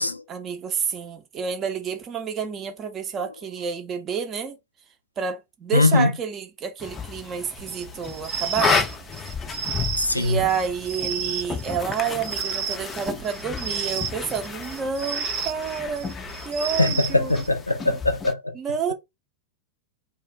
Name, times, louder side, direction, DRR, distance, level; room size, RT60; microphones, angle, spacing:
voice 1, 0.3-4.6 5.2-8.8 10.1-16.1 16.4-17.4 18.5-18.9, right 7 dB, 30° right, 0.6 m, -29 dB
voice 2, 5.7-6.1 10.0-10.4 16.8-18.5, left 2 dB, 85° left, 0.3 m, -21 dB
sound 1, 6.8-18.3, left 5 dB, 20° left, 0.4 m, -32 dB
sound 2, 7.6-17.6, right 6 dB, 60° right, 0.8 m, -32 dB
2.4 x 2.3 x 3.3 m
figure-of-eight pair, 90°, 0 cm